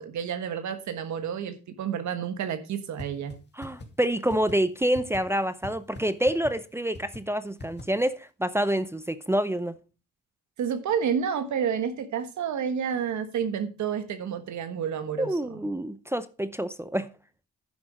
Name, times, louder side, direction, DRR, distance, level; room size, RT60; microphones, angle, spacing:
voice 1, 0.0-3.4 10.6-15.6, right 7 dB, 70° right, 1.3 m, -30 dB
sound 1, 3.0-3.1 3.3-3.4 3.6-3.9 4.3-4.5 4.9-5.2 5.6-5.7 6.0-6.1 6.3-6.5 6.9-7.2 7.6-7.8, left 2 dB, 35° left, 2.4 m, -39 dB
voice 2, 3.6-9.8 15.2-17.1, right 1 dB, 10° right, 0.6 m, -27 dB
10.5 x 6.0 x 5.0 m
cardioid pair, 90°, 30 cm